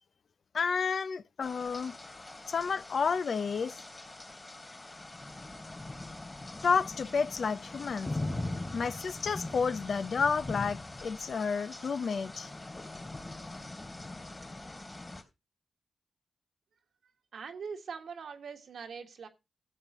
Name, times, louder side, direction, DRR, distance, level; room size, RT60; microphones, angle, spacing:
voice 1, 0.5-1.9 2.5-3.8 6.6-8.1 8.7-12.5, left 5 dB, 70° left, 0.5 m, -30 dB
sound 1, 1.4-15.2, left 2 dB, 30° left, 3.0 m, -42 dB
voice 2, 17.3-19.3, right 6 dB, 80° right, 1.5 m, -42 dB
14.0 x 7.6 x 3.0 m
cardioid pair, 50°, 0 cm